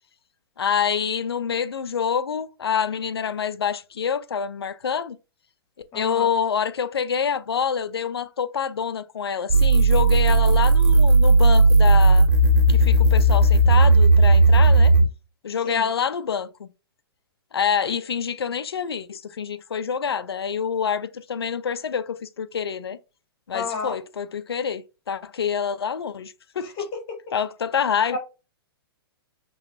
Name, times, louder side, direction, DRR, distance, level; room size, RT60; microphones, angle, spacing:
voice 1, 0.6-5.2 5.9-12.3 12.7-14.9 15.4-16.7 17.5-23.0 23.5-26.7 27.3-28.2, left 7 dB, 85° left, 0.5 m, -26 dB
voice 2, 5.9-6.3 15.6-15.8 23.5-23.9 26.8-26.9 28.1-28.2, left 4 dB, 35° left, 1.9 m, -30 dB
sound 1, 9.5-15.1, right 2 dB, 55° right, 1.6 m, -15 dB
5.8 x 3.1 x 2.6 m
hypercardioid pair, 125°, 13 cm